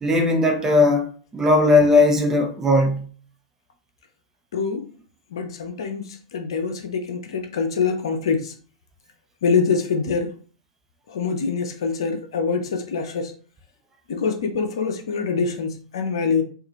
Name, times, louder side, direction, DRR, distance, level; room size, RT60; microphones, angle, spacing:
voice 1, 0.0-1.0 1.3-3.1, left 2 dB, 15° right, 0.9 m, -17 dB
voice 2, 4.5-4.8 5.3-8.5 9.4-10.3 11.1-13.3 14.1-16.4, left 5 dB, 65° left, 0.8 m, -24 dB
4.8 x 2.5 x 3.1 m
figure-of-eight pair, 100°, 3 cm